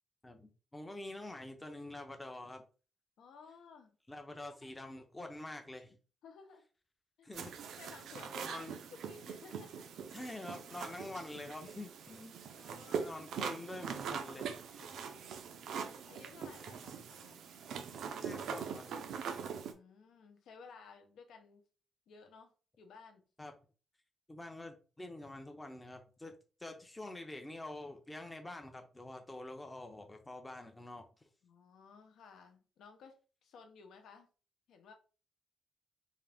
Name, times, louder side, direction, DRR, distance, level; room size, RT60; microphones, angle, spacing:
voice 1, 0.2-2.6 4.1-6.0 7.2-7.6 8.4-8.7 10.1-12.3 13.1-14.8 18.2-19.2 23.4-23.5 24.3-26.3 26.6-31.1, left 2 dB, 10° left, 0.5 m, -46 dB
voice 2, 3.2-4.0 4.6-4.7 6.2-6.6 7.2-7.3 7.8-8.6 8.9-9.9 12.5-13.2 14.8-15.3 16.1-17.5 19.6-21.6 22.1-23.3 31.4-34.3 34.7-34.9, left 5 dB, 90° left, 0.8 m, -56 dB
sound 1, 7.3-19.7, right 6 dB, 85° right, 0.5 m, -42 dB
3.6 x 2.5 x 3.4 m
wide cardioid pair, 180°, 0 cm